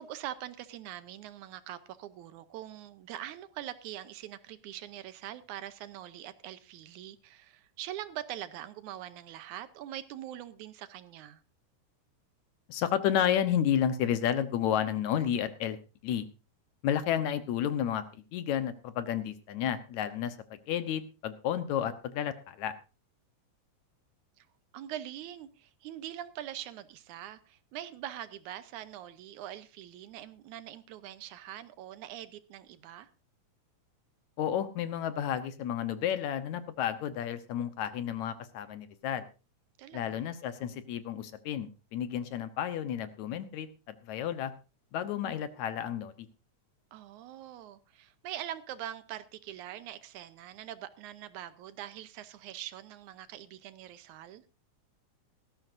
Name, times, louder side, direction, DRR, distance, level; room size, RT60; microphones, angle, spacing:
voice 1, 0.0-11.4 24.4-24.5 24.7-33.1 39.8-40.3 46.9-54.4, right 12 dB, 75° right, 2.2 m, -43 dB
voice 2, 12.7-15.8 16.0-16.3 16.8-22.7 34.4-39.3 39.9-44.5 44.9-46.3, left 9 dB, 70° left, 2.2 m, -31 dB
17.5 x 14.0 x 2.6 m
omnidirectional pair, 3.5 m